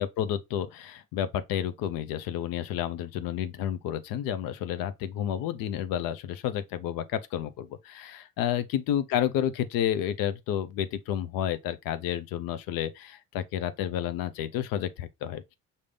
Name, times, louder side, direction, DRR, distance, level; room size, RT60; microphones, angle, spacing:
voice 1, 0.0-15.5, left 10 dB, 85° left, 0.6 m, -30 dB
5.2 x 2.7 x 3.3 m
cardioid pair, 105°, 33 cm